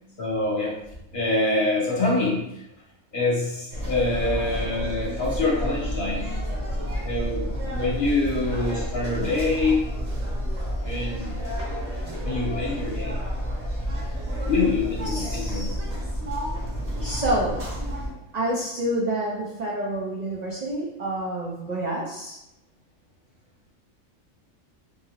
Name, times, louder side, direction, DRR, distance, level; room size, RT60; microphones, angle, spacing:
voice 1, 0.2-0.8 1.1-2.6 3.1-6.3 7.0-9.9 10.8-11.4 12.2-13.2 14.5-15.7, left 2 dB, 55° left, -4 dB, 0.6 m, -25 dB
sound 1, 3.7-18.1, equal, 35° right, 0.7 m, -30 dB
voice 2, 15.1-15.8 17.0-17.6 18.3-22.4, right 1 dB, 80° right, -4 dB, 0.3 m, -28 dB
2.8 x 2.8 x 2.8 m, 0.85 s
omnidirectional pair, 1.4 m